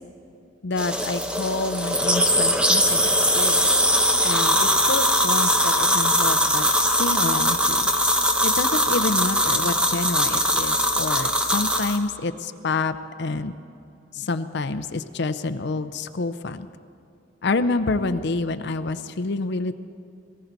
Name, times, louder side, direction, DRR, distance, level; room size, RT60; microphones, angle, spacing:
voice 1, 0.6-3.7 4.2-6.6 7.0-7.8 8.4-13.5 14.2-16.7 17.4-19.7, left 3 dB, 60° left, 10 dB, 0.6 m, -28 dB
sound 1, 0.8-12.0, equal, 5° right, 0.9 m, -21 dB
18.5 x 18.5 x 4.1 m, 2.6 s
head